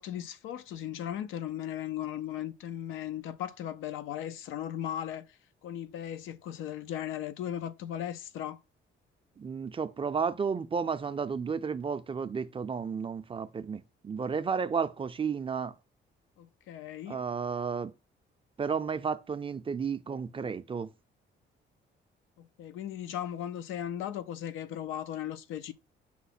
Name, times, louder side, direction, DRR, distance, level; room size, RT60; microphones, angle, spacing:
voice 1, 0.0-5.3 5.6-8.6 16.4-17.2 22.4-25.7, left 10 dB, 90° left, 0.5 m, -37 dB
voice 2, 9.4-15.7 17.1-17.9 18.6-20.9, right 6 dB, 25° right, 0.4 m, -32 dB
5.7 x 2.1 x 4.0 m
cardioid pair, 90°, 20 cm